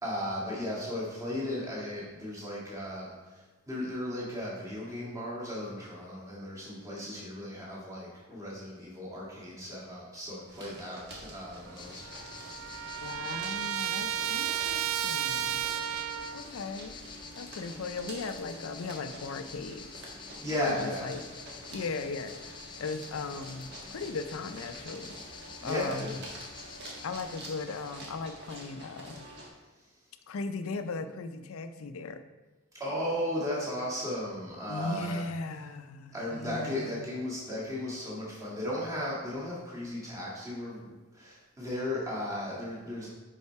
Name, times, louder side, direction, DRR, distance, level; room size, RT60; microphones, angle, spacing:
voice 1, 0.0-12.0 20.4-21.1 25.6-26.2 32.8-35.3 36.1-43.1, left 1 dB, 15° right, -7 dB, 1.7 m, -35 dB
sound 1, 10.5-29.5, right 1 dB, 50° right, 1.4 m, -48 dB
sound 2, 11.7-28.0, left 5 dB, 20° left, 0.4 m, -48 dB
Trumpet, 11.7-11.8 12.0-16.4, right 11 dB, 75° right, 0.3 m, -33 dB
voice 2, 13.0-15.7 16.3-16.9 17.3-19.9 20.6-21.2 21.7-25.2 25.6-26.2 27.0-29.3 30.3-32.2 34.7-37.1, left 4 dB, 80° left, 9 dB, 0.5 m, -37 dB
5.6 x 5.5 x 4.6 m, 1.2 s
head